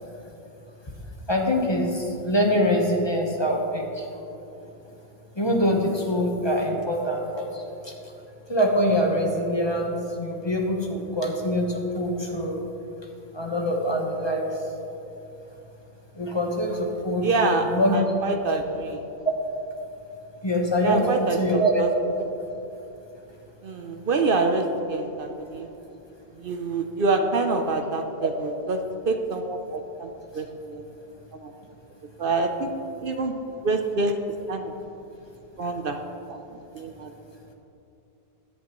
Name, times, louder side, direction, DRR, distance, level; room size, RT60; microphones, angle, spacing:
voice 1, 1.3-4.0 5.4-7.9 8.5-12.6 13.3-14.5 16.1-18.0 18.5-18.6 20.4-21.8, equal, 25° left, 1 dB, 1.2 m, -24 dB
voice 2, 17.2-19.0 20.8-21.9 23.6-25.7 26.4-30.8 31.3-31.5 32.2-32.7 33.0-33.4 33.6-34.1 34.5-34.7 35.6-36.0 36.3-36.4 36.7-37.1, right 3 dB, 60° right, 5 dB, 0.9 m, -26 dB
15.5 x 11.0 x 3.1 m, 3.0 s
omnidirectional pair, 1.0 m